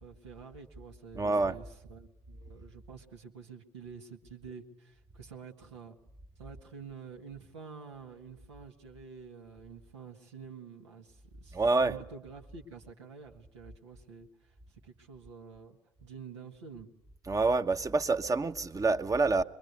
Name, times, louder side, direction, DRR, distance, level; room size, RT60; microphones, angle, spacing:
voice 1, 0.0-6.0 6.4-16.9, right 5 dB, 80° right, 1.8 m, -49 dB
voice 2, 1.1-1.6 11.5-12.0 17.2-19.4, right 3 dB, 25° right, 1.1 m, -27 dB
24.5 x 22.0 x 8.2 m
figure-of-eight pair, 55°, 14 cm